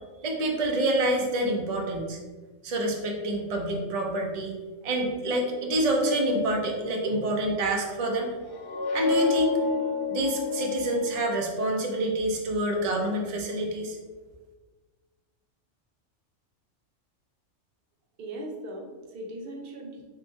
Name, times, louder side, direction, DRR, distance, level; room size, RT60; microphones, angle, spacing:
voice 1, 0.2-2.2 2.6-4.5 4.8-8.3 8.9-9.6 10.1-14.0, right 1 dB, 80° right, 1 dB, 0.3 m, -27 dB
sound 1, 8.4-12.0, left 4 dB, 60° left, 0.6 m, -29 dB
voice 2, 18.2-20.0, right 1 dB, 55° right, -1 dB, 0.8 m, -39 dB
3.7 x 3.3 x 2.6 m, 1.3 s
omnidirectional pair, 1.4 m